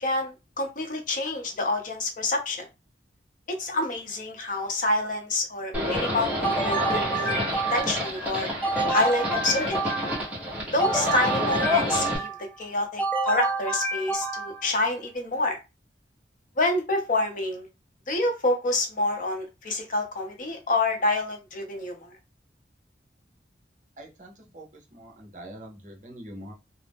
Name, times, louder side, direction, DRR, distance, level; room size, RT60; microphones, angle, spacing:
voice 1, 0.0-2.7 3.5-7.4 7.7-8.5 8.9-9.9 10.7-15.6 16.6-17.7 18.1-22.1, left 2 dB, 45° left, 4 dB, 0.7 m, -27 dB
Livestock farm animals working animals, 5.7-12.2, left 1 dB, 10° right, 0.9 m, -29 dB
sound 1, 6.4-8.1 8.6-10.3 10.8-12.4 13.0-14.7, right 3 dB, 10° left, 0.5 m, -28 dB
voice 2, 24.0-26.5, right 1 dB, 45° right, 1 dB, 0.7 m, -44 dB
2.4 x 2.0 x 3.4 m, 0.26 s
head